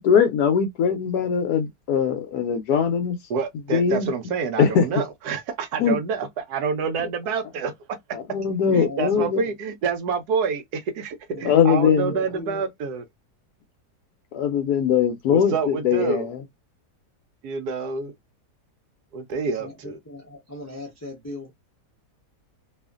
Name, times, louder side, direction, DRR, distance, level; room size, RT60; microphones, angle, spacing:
voice 1, 0.0-3.2 3.7-4.1 4.6-4.9 5.8-6.0 8.1-9.4 11.4-12.1 14.3-16.4, left 7 dB, 75° left, 1.0 m, -21 dB
voice 2, 3.3-7.7 8.7-13.0 15.3-16.3 17.4-18.1 19.1-20.0, right 5 dB, 70° right, 1.1 m, -27 dB
voice 3, 8.7-9.3 11.3-12.6 19.6-21.7, left 1 dB, 25° left, 0.3 m, -38 dB
2.8 x 2.4 x 2.3 m
omnidirectional pair, 1.8 m